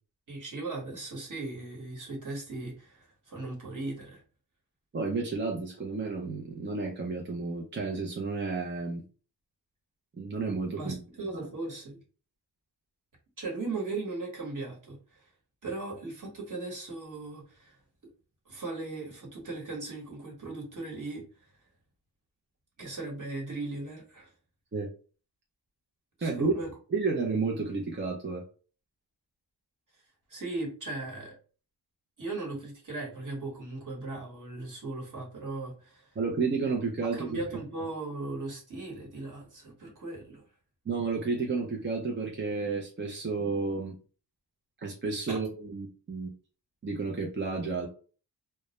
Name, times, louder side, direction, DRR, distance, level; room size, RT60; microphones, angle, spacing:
voice 1, 0.3-4.2 10.8-12.0 13.4-15.3 15.6-17.8 18.5-21.2 22.8-24.3 26.2-26.7 30.3-31.3 32.2-36.1 37.0-40.4 45.3-45.4, right 2 dB, 45° right, 1.1 m, -38 dB
voice 2, 4.9-9.0 10.2-11.0 11.3-11.5 24.7-24.9 26.2-26.5 26.9-28.4 36.2-37.4 40.9-43.9 44.8-46.3 46.8-47.9, right 4 dB, 25° right, 0.4 m, -31 dB
2.2 x 2.0 x 2.9 m
wide cardioid pair, 105°, 44 cm